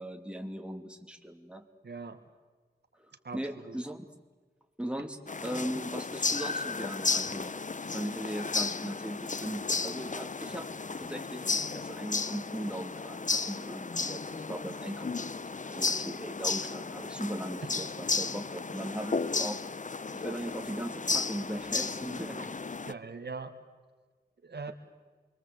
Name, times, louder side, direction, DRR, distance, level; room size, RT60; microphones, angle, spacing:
voice 1, 0.0-1.7 3.0-3.1 3.3-4.0 4.8-7.6 7.8-19.6 20.1-22.8, right 1 dB, 5° right, 4 dB, 2.8 m, -39 dB
voice 2, 1.8-2.2 3.2-3.4 22.9-23.5 24.4-24.7, right 4 dB, 75° right, 6 dB, 1.9 m, -40 dB
sound 1, 5.3-22.9, left 4 dB, 45° left, 0.7 m, -34 dB
28.0 x 22.5 x 8.2 m, 1.4 s
cardioid pair, 40°, 17 cm